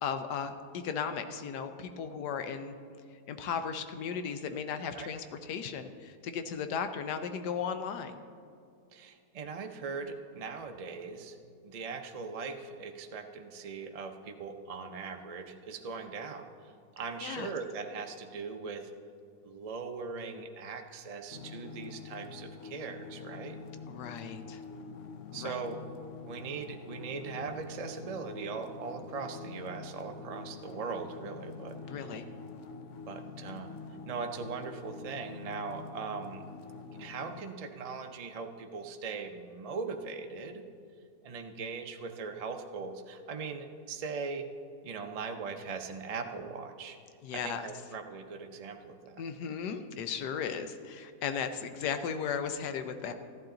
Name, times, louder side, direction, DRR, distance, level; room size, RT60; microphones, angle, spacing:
voice 1, 0.0-2.8 3.3-8.2 17.2-17.5 23.9-24.6 25.3-25.5 31.8-32.3 47.2-47.7 49.2-53.1, left 7 dB, 80° left, 8 dB, 1.3 m, -36 dB
voice 2, 8.9-11.4 11.6-18.9 19.4-23.6 25.3-25.8 26.3-31.8 33.1-33.7 34.1-36.5 37.0-40.7 41.2-44.5 44.8-47.0 47.3-49.2, right 5 dB, 65° right, 4 dB, 0.3 m, -40 dB
sound 1, 21.3-37.4, left 4 dB, 60° left, 0.8 m, -46 dB
14.0 x 11.5 x 3.8 m, 2.3 s
omnidirectional pair, 1.7 m